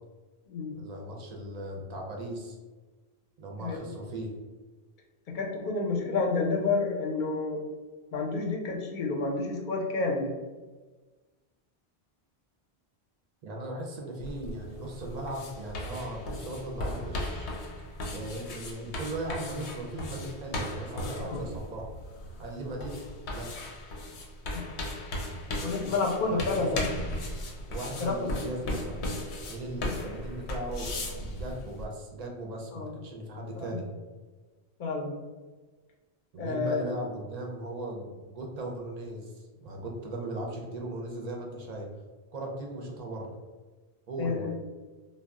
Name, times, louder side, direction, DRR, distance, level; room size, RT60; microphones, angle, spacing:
voice 1, 0.7-2.6 3.4-4.3 13.4-17.5 18.1-21.9 22.4-23.0 23.3-23.7 25.8-26.0 26.3-26.9 27.7-29.0 29.5-33.9 36.3-41.9 42.3-43.3 44.1-44.5, right 1 dB, 50° right, 0 dB, 0.5 m, -38 dB
voice 2, 5.3-7.6 8.1-10.3 21.2-21.5 24.5-24.7 25.6-26.9 27.9-28.3 32.7-32.9 33.6-33.8 34.8-35.1 36.4-36.9 44.2-44.5, left 3 dB, 55° left, 0 dB, 0.6 m, -30 dB
sound 1, 14.2-31.8, left 1 dB, 85° left, 0.9 m, -37 dB
2.3 x 2.0 x 3.4 m, 1.3 s
omnidirectional pair, 1.1 m